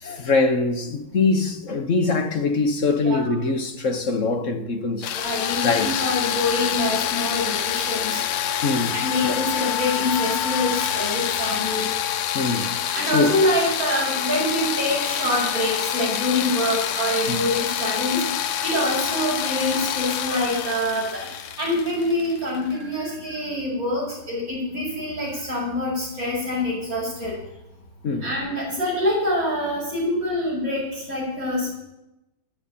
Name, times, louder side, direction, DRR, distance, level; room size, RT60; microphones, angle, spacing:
voice 1, 0.0-5.1 5.6-6.0 8.6-9.0 9.2-9.4 12.3-13.3 17.3-17.4 28.0-28.3, left 3 dB, 40° left, 1.3 m, -23 dB
voice 2, 3.0-3.3 5.1-8.2 8.9-11.9 12.9-18.2 18.6-27.3 28.2-31.8, left 1 dB, 40° right, 6.5 m, -25 dB
sound 1, 5.0-22.7, left 10 dB, 80° left, 1.7 m, -27 dB
11.0 x 9.0 x 8.7 m
omnidirectional pair, 2.4 m